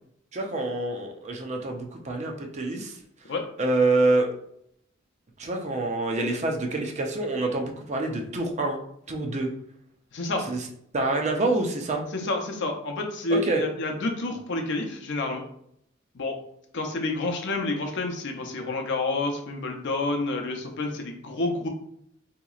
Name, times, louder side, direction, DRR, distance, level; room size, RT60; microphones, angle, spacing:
voice 1, 0.3-2.9 3.6-4.3 5.4-8.8 9.1-9.5 10.5-10.6 10.9-12.0 13.3-13.6, right 2 dB, 35° right, 2 dB, 0.5 m, -26 dB
voice 2, 10.1-10.5 12.1-15.4 16.1-16.4 16.7-21.7, left 2 dB, 60° left, 3 dB, 0.6 m, -29 dB
3.9 x 2.8 x 2.4 m, 0.70 s
head